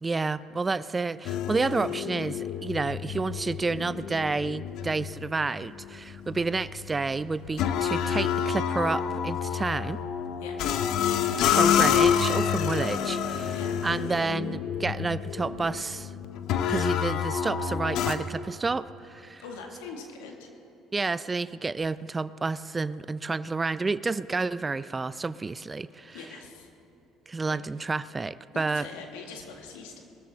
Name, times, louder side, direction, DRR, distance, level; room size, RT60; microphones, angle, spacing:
voice 1, 0.0-10.0 11.5-13.5 13.8-16.1 16.7-19.4 20.9-26.2 27.3-28.9, right 3 dB, 25° right, 17 dB, 0.4 m, -30 dB
sound 1, 1.2-18.1, left 8 dB, 70° left, 0.7 m, -28 dB
voice 2, 19.4-20.5 26.1-26.7 27.5-27.6 28.5-30.0, left 4 dB, 85° left, 2 dB, 1.8 m, -42 dB
22.0 x 13.5 x 3.5 m, 2.7 s
hypercardioid pair, 65°, 0 cm